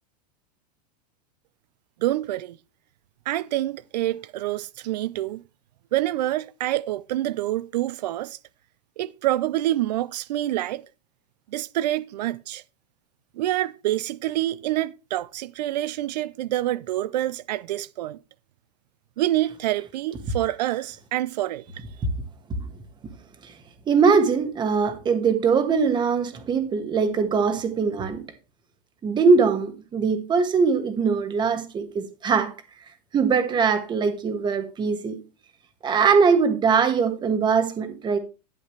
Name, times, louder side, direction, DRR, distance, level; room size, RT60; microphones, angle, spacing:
voice 1, 2.0-2.6 3.3-5.4 5.9-8.4 9.0-10.8 11.5-12.6 13.4-18.2 19.2-21.8, right 14 dB, 85° right, 0.5 m, -27 dB
voice 2, 23.9-28.2 29.0-32.5 33.1-35.2 35.8-38.2, right 5 dB, 20° right, 1.6 m, -21 dB
12.0 x 8.1 x 3.3 m
supercardioid pair, 145°, 21 cm